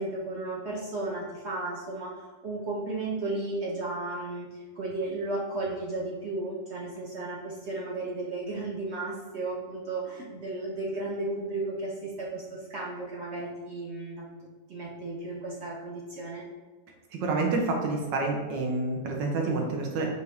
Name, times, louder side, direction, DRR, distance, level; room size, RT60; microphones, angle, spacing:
voice 1, 0.0-14.2 14.7-16.5, right 2 dB, 70° right, -4 dB, 0.6 m, -34 dB
voice 2, 17.2-20.1, right 3 dB, 85° right, 1 dB, 1.5 m, -28 dB
5.1 x 2.5 x 3.3 m, 1.3 s
omnidirectional pair, 1.9 m